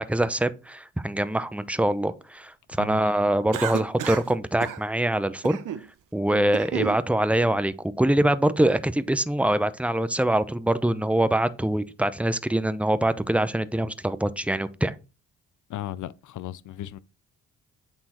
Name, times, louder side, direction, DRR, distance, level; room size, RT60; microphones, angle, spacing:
voice 1, 0.0-5.6 6.1-14.9, right 1 dB, 5° right, 0.7 m, -24 dB
voice 2, 2.7-3.4 6.3-6.5 15.7-17.0, left 12 dB, 60° left, 0.6 m, -36 dB
Cough, 3.5-4.3 4.6-4.8 5.4-5.9 6.3-7.0, right 10 dB, 65° right, 0.9 m, -32 dB
8.8 x 3.7 x 4.4 m
supercardioid pair, 55°, 35 cm